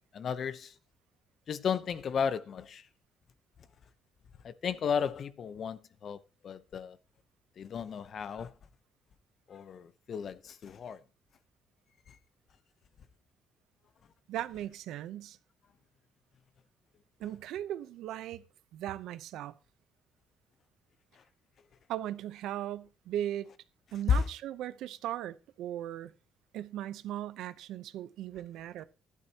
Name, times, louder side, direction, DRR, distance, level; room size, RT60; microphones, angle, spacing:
voice 1, 0.1-0.7 1.5-2.8 4.4-7.0 7.6-8.5 9.5-11.0 12.1-12.2 24.1-24.2, left 6 dB, 55° left, 0.8 m, -33 dB
voice 2, 14.3-15.4 17.2-18.4 18.7-19.5 21.9-23.5 23.9-26.1 26.5-28.8, right 12 dB, 80° right, 0.8 m, -38 dB
12.0 x 12.0 x 2.9 m
cardioid pair, 100°, 0 cm